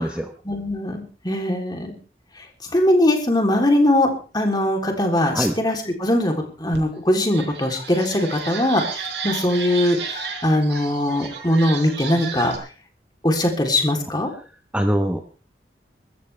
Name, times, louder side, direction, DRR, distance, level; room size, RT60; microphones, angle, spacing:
voice 1, 0.4-2.0 2.7-12.7 13.2-14.3, left 1 dB, 25° left, 3 dB, 3.4 m, -21 dB
sound 1, 6.7-6.8 7.2-12.6, right 5 dB, 80° right, 4.6 m, -33 dB
voice 2, 14.7-15.2, equal, 5° right, 4 dB, 1.1 m, -22 dB
23.5 x 14.0 x 3.4 m, 0.36 s
head